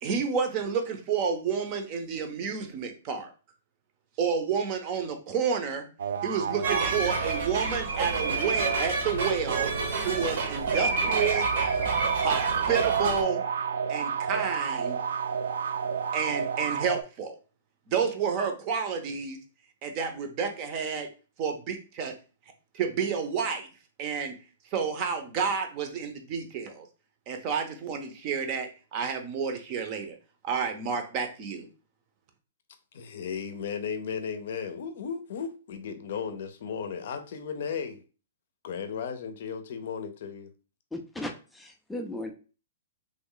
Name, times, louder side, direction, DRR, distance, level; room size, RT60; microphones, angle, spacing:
voice 1, 0.0-3.3 4.2-5.9 6.2-9.7 10.0-11.5 12.2-13.4 13.9-15.0 16.1-17.4 17.9-19.4 19.8-21.1 21.4-22.1 22.7-23.7 24.0-24.3 24.7-26.9 27.3-30.2 30.4-31.7, right 6 dB, 30° right, 6 dB, 0.7 m, -30 dB
sound 1, 6.0-7.6 9.0-17.0, right 6 dB, 75° right, 0.3 m, -31 dB
sound 2, 6.6-13.2, right 4 dB, 60° right, 0.9 m, -29 dB
voice 2, 32.9-38.0 38.6-40.5, left 6 dB, 55° left, 9 dB, 0.6 m, -35 dB
voice 3, 40.9-42.3, left 1 dB, 5° left, 3 dB, 0.3 m, -36 dB
3.1 x 2.2 x 3.7 m, 0.35 s
hypercardioid pair, 160°, 0 cm